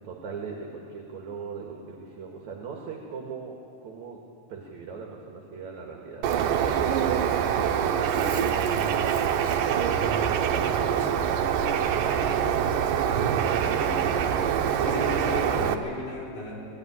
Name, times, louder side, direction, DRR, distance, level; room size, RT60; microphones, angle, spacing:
voice 1, 0.0-4.2 4.5-6.2 7.6-11.9, right 5 dB, 60° right, 0 dB, 3.1 m, -40 dB
Bird, 6.2-15.7, right 8 dB, 85° right, 2.6 m, -25 dB
voice 2, 13.2-14.1 14.8-16.7, left 3 dB, 80° left, -5 dB, 6.5 m, -36 dB
20.0 x 16.0 x 9.8 m, 2.6 s
omnidirectional pair, 3.8 m